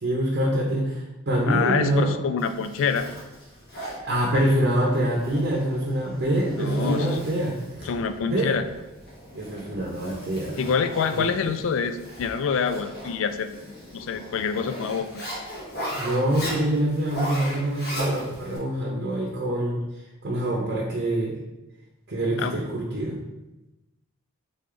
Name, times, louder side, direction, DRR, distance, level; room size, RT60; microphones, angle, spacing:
voice 1, 0.0-2.2 4.0-7.9 8.2-8.5 9.3-10.6 11.1-11.4 15.9-19.8 20.2-21.4 22.1-23.2, right 1 dB, 50° right, -3 dB, 0.7 m, -25 dB
voice 2, 1.5-3.1 4.3-4.4 6.6-7.1 7.9-8.6 10.6-13.5 13.9-15.2 22.4-22.6, left 6 dB, 65° left, 10 dB, 0.3 m, -26 dB
Zipper (clothing), 2.4-18.6, equal, 50° left, 1.3 m, -37 dB
3.7 x 3.3 x 3.7 m, 0.99 s
head